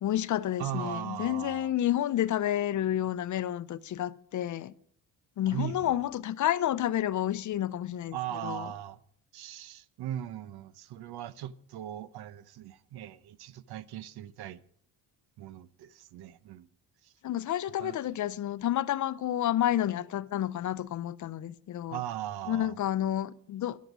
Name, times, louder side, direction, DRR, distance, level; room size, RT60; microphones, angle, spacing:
voice 1, 0.0-4.7 5.4-8.2 8.4-8.7 17.2-22.0 22.5-23.8, left 12 dB, 50° left, 0.6 m, -30 dB
voice 2, 0.6-1.7 5.5-6.0 8.1-9.0 9.3-14.6 15.4-16.7 17.0-17.1 17.8-18.0 21.9-22.8, right 11 dB, 75° right, 0.8 m, -39 dB
13.5 x 11.5 x 6.1 m
cardioid pair, 125°, 39 cm